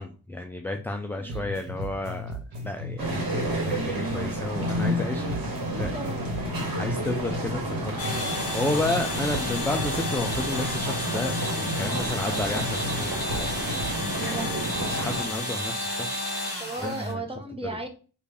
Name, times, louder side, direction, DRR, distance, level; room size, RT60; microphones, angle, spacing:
voice 1, 0.0-5.5 5.8-5.9 6.8-7.8 8.5-13.5 14.3-14.4 14.9-16.3 16.8-17.2 17.6-17.8, left 2 dB, 5° left, 4 dB, 0.3 m, -32 dB
voice 2, 1.1-1.5 5.7-6.4 7.4-7.6 14.2-14.8 16.6-17.9, right 2 dB, 10° right, 4 dB, 0.9 m, -36 dB
sound 1, 1.3-5.0 5.3-9.0 9.3-13.0 13.3-14.1, left 1 dB, 70° right, 1.2 m, -37 dB
sound 2, 3.0-15.2, right 1 dB, 45° right, 1.5 m, -31 dB
sound 3, 8.0-17.1, left 1 dB, 30° left, 1.4 m, -32 dB
3.2 x 2.5 x 3.4 m, 0.36 s
hypercardioid pair, 45°, 47 cm